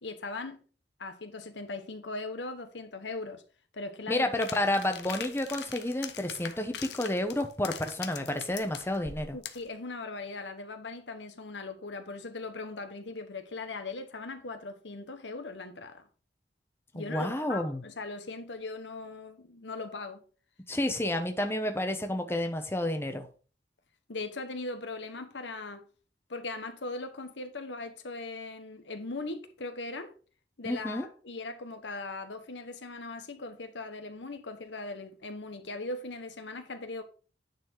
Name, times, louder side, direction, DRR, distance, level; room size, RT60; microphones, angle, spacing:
voice 1, 0.0-0.6 1.0-3.4 3.7-4.3 9.3-16.1 16.9-20.2 24.1-25.9 26.3-30.1 30.6-37.0, left 3 dB, 80° left, 1.2 m, -39 dB
voice 2, 4.1-9.4 16.9-17.8 20.7-23.3 30.6-31.1, left 1 dB, 15° left, 0.9 m, -30 dB
sound 1, 4.4-9.7, left 8 dB, 65° left, 0.9 m, -42 dB
9.6 x 4.3 x 4.5 m
head